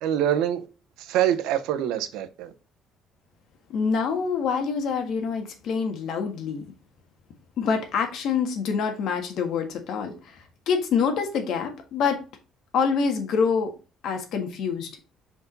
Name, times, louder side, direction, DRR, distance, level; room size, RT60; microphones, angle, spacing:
voice 1, 0.0-0.7 1.0-2.5, right 11 dB, 90° right, 0.9 m, -25 dB
voice 2, 3.7-6.6 7.6-12.2 12.7-13.7 14.0-14.9, left 6 dB, 60° left, 1.6 m, -26 dB
5.4 x 4.8 x 3.9 m
cardioid pair, 170°, 0 cm